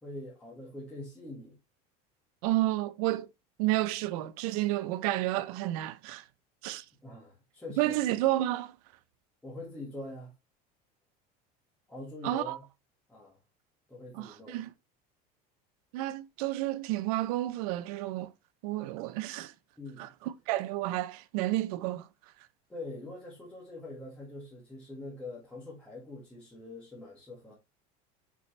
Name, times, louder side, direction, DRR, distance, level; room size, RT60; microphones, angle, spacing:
voice 1, 0.0-1.6 7.0-8.0 9.4-10.3 11.9-12.6 13.1-13.4 13.9-14.6 19.8-20.1 22.7-27.5, left 2 dB, 5° left, 1.7 m, -44 dB
voice 2, 2.4-3.3 3.6-6.2 6.6-6.8 7.8-8.7 12.2-12.6 14.1-14.7 15.9-18.3 18.6-19.5 20.0-22.1, right 16 dB, 80° right, 0.7 m, -31 dB
6.3 x 5.4 x 3.3 m
cardioid pair, 175°, 19 cm